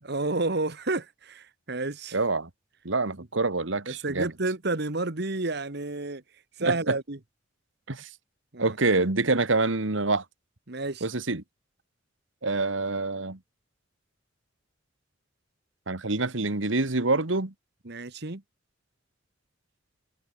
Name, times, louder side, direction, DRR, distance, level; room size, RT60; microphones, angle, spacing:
voice 1, 0.0-2.2 3.2-3.3 3.9-6.2 6.6-7.2 8.5-8.8 10.7-11.1 17.9-18.4, right 2 dB, 55° right, 1.6 m, -30 dB
voice 2, 2.1-2.5 2.9-4.3 6.6-7.0 7.9-8.1 8.6-10.2 11.0-11.4 12.4-13.4 15.9-17.5, right 3 dB, 80° right, 1.9 m, -26 dB
head